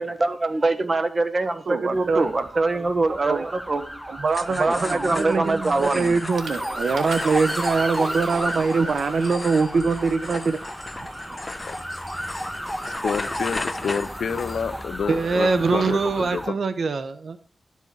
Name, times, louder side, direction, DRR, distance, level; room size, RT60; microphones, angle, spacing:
voice 1, 0.0-3.8 4.6-6.1, right 2 dB, 40° right, 1.4 m, -23 dB
voice 2, 1.7-2.9 3.2-3.4 4.1-10.6 15.1-17.4, right 4 dB, 65° right, 0.8 m, -23 dB
sound 1, 1.9-16.5, equal, ahead, 0.4 m, -33 dB
sound 2, 4.3-14.9, left 2 dB, 30° left, 0.9 m, -37 dB
Water / Toilet flush, 5.7-6.0 6.4-14.2, right 4 dB, 90° right, 1.8 m, -43 dB
voice 3, 12.9-16.6, left 6 dB, 80° left, 0.8 m, -29 dB
12.5 x 8.4 x 4.7 m
cardioid pair, 75°, 0 cm